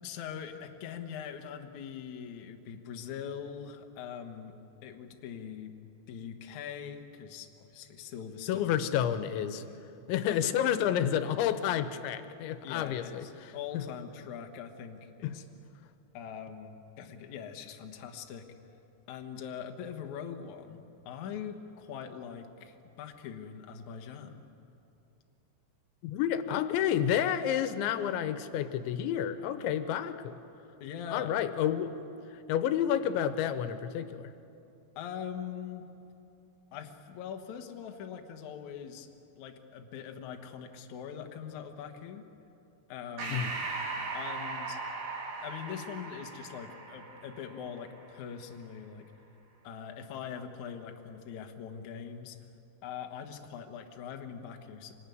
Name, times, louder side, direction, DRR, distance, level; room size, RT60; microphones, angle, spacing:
voice 1, 0.0-4.5 4.8-5.7 6.1-8.9 9.6-9.8 12.6-15.4 16.1-18.5 19.1-24.4 30.8-31.3 35.0-35.8 36.7-39.1 39.4-42.2 42.9-43.6 44.1-44.8 45.4-49.1 49.6-52.4 52.8-54.9, left 8 dB, 60° left, 4 dB, 2.1 m, -42 dB
voice 2, 8.5-9.6 10.1-13.8 15.2-15.4 26.0-30.4 31.1-32.0 32.5-34.3 43.3-43.5, left 10 dB, 90° left, 11 dB, 3.3 m, -30 dB
Breathing, 43.2-48.1, right 3 dB, 85° right, 6.2 m, -38 dB
25.0 x 19.5 x 9.4 m, 2.8 s
omnidirectional pair, 5.2 m